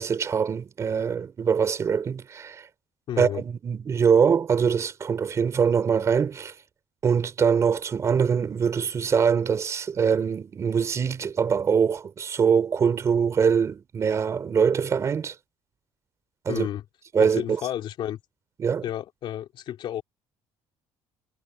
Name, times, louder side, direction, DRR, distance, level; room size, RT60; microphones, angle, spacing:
voice 1, 0.0-2.7 3.2-6.5 7.0-15.4 16.5-16.7 17.1-17.6 18.6-18.8, right 6 dB, 25° right, 3.9 m, -23 dB
voice 2, 3.1-3.4 16.5-16.8 17.4-18.2 18.8-20.0, left 11 dB, 50° left, 3.3 m, -31 dB
cardioid pair, 175°, 11 cm